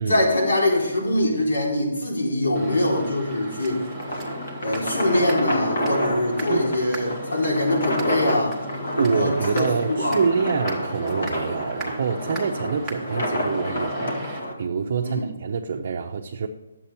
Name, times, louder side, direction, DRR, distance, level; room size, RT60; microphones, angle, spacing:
voice 1, 0.1-3.8 4.6-8.6 9.0-10.2 15.0-15.3, left 1 dB, 90° left, -3 dB, 3.7 m, -23 dB
sound 1, 2.5-14.4, equal, 5° right, 1.0 m, -38 dB
sound 2, 3.3-14.5, equal, 70° left, 1.9 m, -29 dB
voice 2, 9.0-16.5, right 5 dB, 45° right, 2 dB, 0.6 m, -26 dB
10.0 x 7.6 x 4.3 m, 0.97 s
hypercardioid pair, 165°, 0 cm